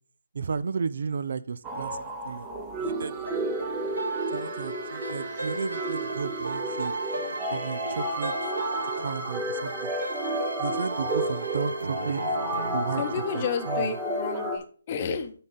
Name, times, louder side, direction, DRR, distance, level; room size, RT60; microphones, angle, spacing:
voice 1, 0.3-2.0 2.2-2.5 2.8-3.2 4.3-6.9 7.5-8.3 9.0-9.9 10.6-12.2 12.7-13.0 13.3-13.9, right 5 dB, 60° right, 0.4 m, -33 dB
sound 1, 1.6-14.6, right 1 dB, 15° right, 0.8 m, -32 dB
sound 2, 3.2-14.5, right 2 dB, 85° right, 1.3 m, -35 dB
voice 2, 13.0-15.3, left 6 dB, 35° left, 0.8 m, -31 dB
8.7 x 3.8 x 4.1 m
hypercardioid pair, 155°, 0 cm